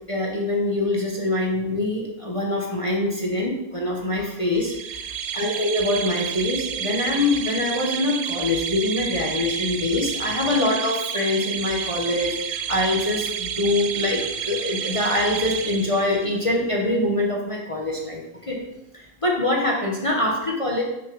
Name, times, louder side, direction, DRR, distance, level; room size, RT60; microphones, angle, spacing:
voice 1, 0.0-18.6 18.9-20.8, left 2 dB, 25° left, -1 dB, 1.1 m, -24 dB
sound 1, 4.6-16.4, right 8 dB, 65° right, 0.8 m, -30 dB
6.7 x 5.9 x 5.4 m, 0.92 s
omnidirectional pair, 1.5 m